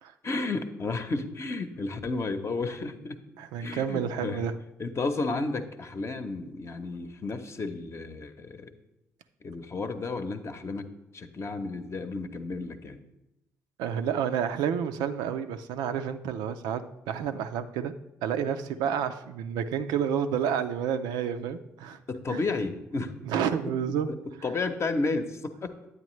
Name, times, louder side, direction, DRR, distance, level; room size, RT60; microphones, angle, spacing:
voice 1, 0.2-3.2 3.6-4.4 4.8-8.7 9.4-13.0 22.1-23.1 23.4-23.5 24.1-24.2 24.4-25.7, left 3 dB, 35° left, 8 dB, 0.8 m, -32 dB
voice 2, 3.4-4.5 13.8-17.9 18.2-22.0 22.3-22.4 23.2-24.1, right 8 dB, 70° right, 9 dB, 0.4 m, -30 dB
9.4 x 8.9 x 3.1 m, 0.91 s
hypercardioid pair, 45°, 8 cm